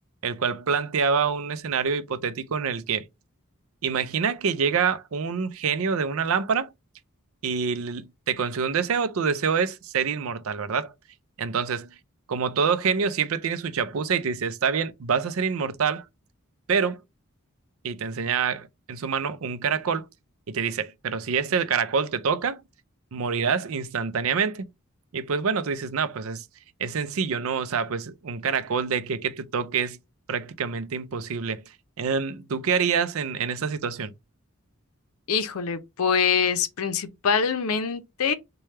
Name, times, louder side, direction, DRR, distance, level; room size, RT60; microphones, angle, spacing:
voice 1, 0.2-3.1 3.8-6.7 7.4-10.9 11.4-11.9 12.3-16.1 16.7-17.0 17.8-20.1 20.5-22.6 23.1-24.7 25.1-26.4 26.8-30.0 30.3-31.6 32.0-34.1, right 6 dB, 75° right, 0.5 m, -26 dB
voice 2, 35.3-38.3, left 6 dB, 80° left, 0.6 m, -24 dB
3.3 x 2.2 x 4.2 m
head